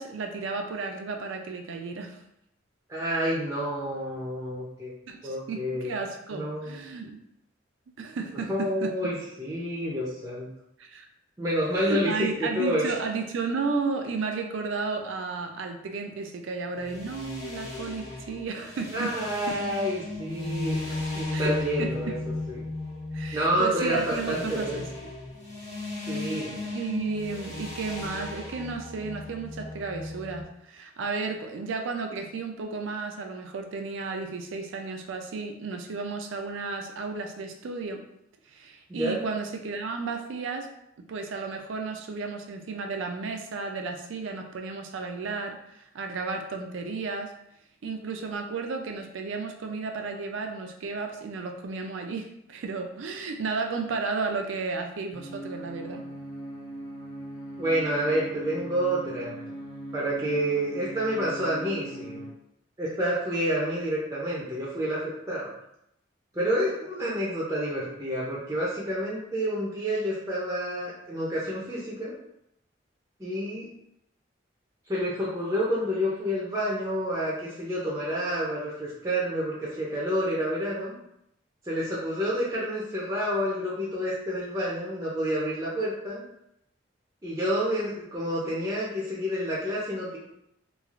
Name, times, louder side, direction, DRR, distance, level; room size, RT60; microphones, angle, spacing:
voice 1, 0.0-2.2 5.1-7.2 8.0-9.0 10.8-11.1 11.8-19.2 19.5-19.6 21.3-21.5 21.8-22.2 23.1-25.1 26.0-26.2 26.7-38.0 38.5-40.7 41.1-45.6 45.9-47.3 47.8-56.0, right 4 dB, 85° right, 5 dB, 0.4 m, -33 dB
voice 2, 2.9-4.9 5.2-5.9 6.3-6.9 8.5-10.5 11.4-12.8 18.9-22.1 22.5-22.6 23.3-24.9 26.1-26.5 38.9-39.2 57.6-59.3 59.9-62.2 62.8-65.0 65.3-65.5 66.3-72.1 73.2-73.7 74.9-80.9 81.6-86.2 87.2-90.2, equal, 15° right, -6 dB, 0.5 m, -29 dB
sound 1, 16.8-30.4, left 2 dB, 60° left, 1.1 m, -36 dB
sound 2, 55.1-62.3, right 1 dB, 80° left, 1.4 m, -40 dB
3.1 x 2.4 x 2.4 m, 0.78 s
head